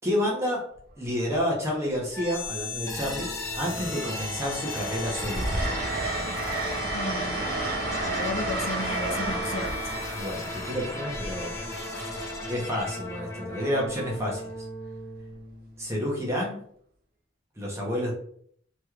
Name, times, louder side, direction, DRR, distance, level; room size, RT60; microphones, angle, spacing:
voice 1, 0.0-0.7 1.0-5.7 10.1-11.6 12.5-14.5 15.8-16.6 17.6-18.1, equal, 15° right, -3 dB, 0.8 m, -30 dB
Train, 0.7-1.1 2.4-3.1 3.5-12.3 13.9-14.1, right 3 dB, 50° right, 0.6 m, -32 dB
sound 1, 2.1-16.0, left 2 dB, 15° left, 0.5 m, -36 dB
voice 2, 6.9-7.6 8.0-9.9, left 3 dB, 85° left, 4 dB, 0.5 m, -34 dB
3.1 x 3.0 x 2.4 m, 0.62 s
head